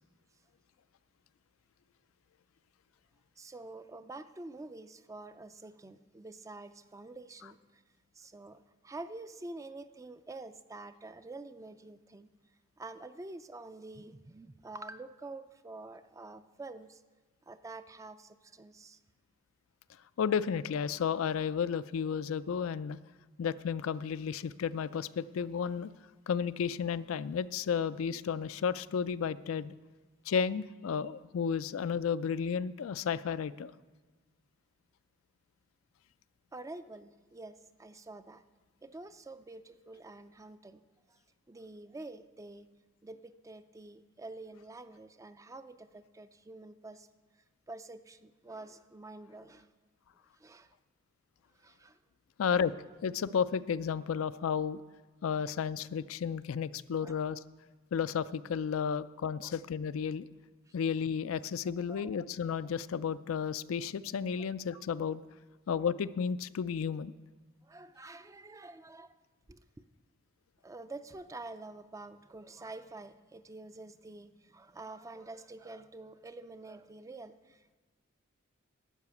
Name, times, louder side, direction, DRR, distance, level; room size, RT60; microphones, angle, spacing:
voice 1, 3.4-7.8 8.1-12.3 12.8-17.0 17.5-19.0 28.1-28.2 36.5-38.4 38.8-40.8 41.1-41.2 41.5-42.7 43.0-47.1 47.7-49.7 50.4-50.7 51.6-52.0 57.0-57.2 59.4-59.6 61.9-62.2 64.4-65.2 67.6-69.1 69.5-69.8 70.6-77.8, right 2 dB, 15° right, 0.4 m, -48 dB
voice 2, 20.2-23.0 23.4-25.9 26.3-29.7 30.3-33.7 52.4-52.7 53.0-54.8 55.2-57.4 57.9-60.2 60.7-65.2 65.7-67.1, left 7 dB, 80° left, 0.4 m, -32 dB
12.0 x 5.7 x 8.3 m
head